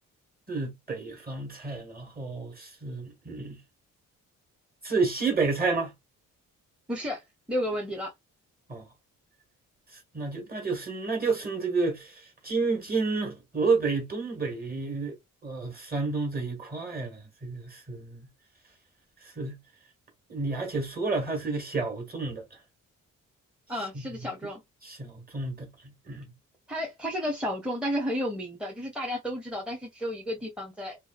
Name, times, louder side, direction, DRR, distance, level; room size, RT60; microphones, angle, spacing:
voice 1, 0.5-3.6 4.8-5.9 8.7-8.9 10.1-15.2 15.4-18.3 19.2-19.6 20.3-22.4 23.9-24.0 24.8-26.3, right 4 dB, 30° right, 1.5 m, -30 dB
voice 2, 6.9-7.2 7.5-8.1 23.7-24.6 26.7-31.0, equal, 5° right, 0.7 m, -32 dB
2.5 x 2.4 x 2.4 m
cardioid pair, 90°, 32 cm